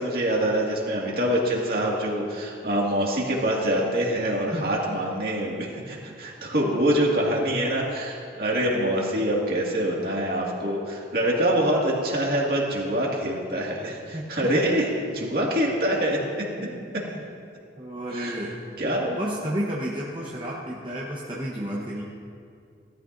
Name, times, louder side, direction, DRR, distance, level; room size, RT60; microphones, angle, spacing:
voice 1, 0.0-16.2 18.1-18.4 18.8-19.2, right 1 dB, 55° right, -2 dB, 2.1 m, -25 dB
voice 2, 14.1-14.5 16.6-17.2 17.8-18.6 19.2-22.0, equal, 25° right, -5 dB, 1.1 m, -32 dB
18.0 x 13.0 x 2.6 m, 2.3 s
head